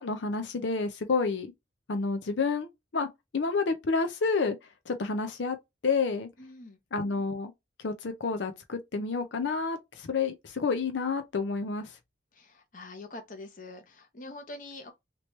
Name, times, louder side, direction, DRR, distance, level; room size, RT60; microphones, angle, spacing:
voice 1, 0.0-1.5 1.9-3.1 3.3-4.6 4.9-5.6 5.8-6.3 6.9-7.5 7.8-12.0, left 4 dB, 85° left, 0.6 m, -29 dB
voice 2, 6.4-6.8 12.3-14.9, left 2 dB, 45° left, 0.8 m, -44 dB
3.0 x 2.9 x 3.1 m
head